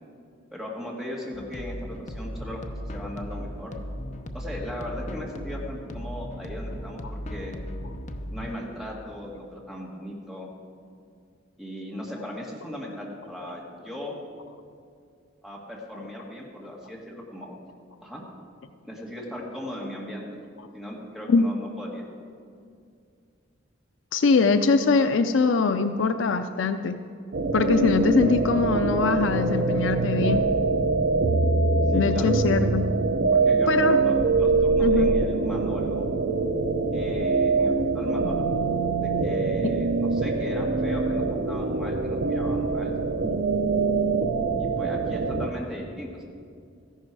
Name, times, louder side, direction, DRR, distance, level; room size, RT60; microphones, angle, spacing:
voice 1, 0.5-3.7 4.3-7.5 8.3-10.5 11.6-14.2 15.4-17.6 18.0-18.2 18.8-20.3 20.7-22.0 31.9-32.3 33.3-36.1 36.9-38.5 38.8-42.9 44.6-46.2, left 1 dB, ahead, -3 dB, 1.9 m, -38 dB
sound 1, 1.3-8.6, equal, 40° left, 0.7 m, -36 dB
voice 2, 24.1-27.0 27.5-30.4 31.9-32.8 33.7-34.0 34.8-35.1, left 4 dB, 80° left, 9 dB, 0.5 m, -22 dB
sound 2, 27.3-45.5, right 3 dB, 65° right, 0.7 m, -24 dB
14.5 x 11.0 x 4.7 m, 2.3 s
head